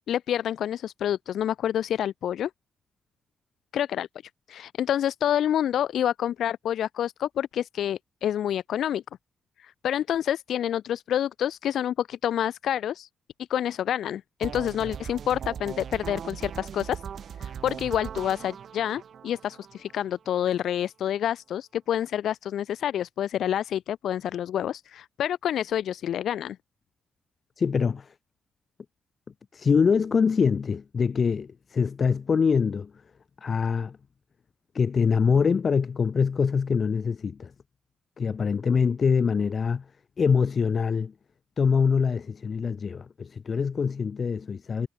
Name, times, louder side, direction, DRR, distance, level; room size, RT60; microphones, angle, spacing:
voice 1, 0.1-2.5 3.7-4.1 4.5-9.0 9.6-13.1 13.5-17.0 17.4-26.6, left 10 dB, 75° left, 3.1 m, -28 dB
sound 1, 14.4-20.4, right 8 dB, 50° right, 5.7 m, -39 dB
voice 2, 27.6-28.1 29.5-32.9 33.4-34.0 34.7-37.5 38.2-39.8 40.2-41.1 41.6-44.9, left 6 dB, 35° left, 6.3 m, -24 dB
wide cardioid pair, 175°, 0 cm